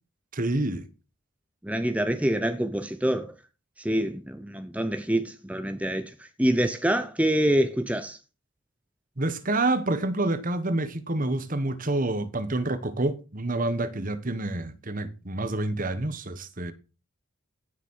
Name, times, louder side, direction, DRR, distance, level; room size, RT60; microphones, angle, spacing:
voice 1, 0.3-0.8 9.2-16.7, right 2 dB, 40° right, 1.4 m, -28 dB
voice 2, 1.6-3.3 3.8-8.2, right 1 dB, 5° right, 0.9 m, -26 dB
16.5 x 7.3 x 5.6 m
head